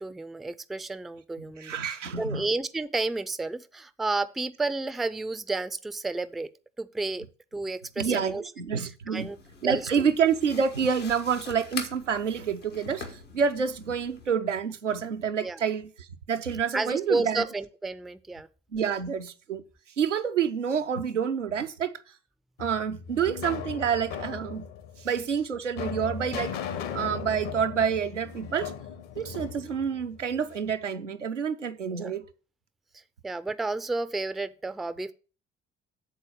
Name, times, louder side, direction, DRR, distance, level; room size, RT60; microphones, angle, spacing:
voice 1, 0.0-6.5 6.8-7.2 7.5-8.4 9.1-9.4 9.6-10.1 15.4-15.6 16.7-18.5 31.9-32.1 32.9-35.1, right 3 dB, ahead, 0.3 m, -31 dB
voice 2, 1.6-2.5 8.0-9.3 9.6-15.9 16.3-17.5 18.7-19.6 20.0-21.9 22.6-24.7 25.0-26.6 26.9-28.7 29.2-32.2, right 7 dB, 85° right, 0.5 m, -28 dB
sound 1, 9.1-14.3, left 4 dB, 85° left, 1.1 m, -43 dB
sound 2, 22.6-30.7, left 7 dB, 60° left, 0.9 m, -37 dB
7.8 x 4.0 x 6.3 m
figure-of-eight pair, 50°, 36 cm